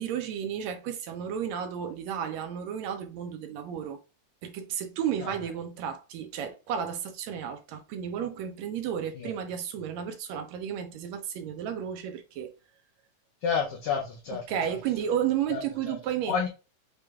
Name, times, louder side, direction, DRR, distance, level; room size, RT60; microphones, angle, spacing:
voice 1, 0.0-4.0 4.4-12.5 14.5-16.5, right 9 dB, 75° right, 1.8 m, -32 dB
voice 2, 13.4-14.4 15.5-15.6 15.9-16.0 16.3-16.5, left 6 dB, 80° left, 1.3 m, -29 dB
6.1 x 3.3 x 2.3 m
omnidirectional pair, 3.4 m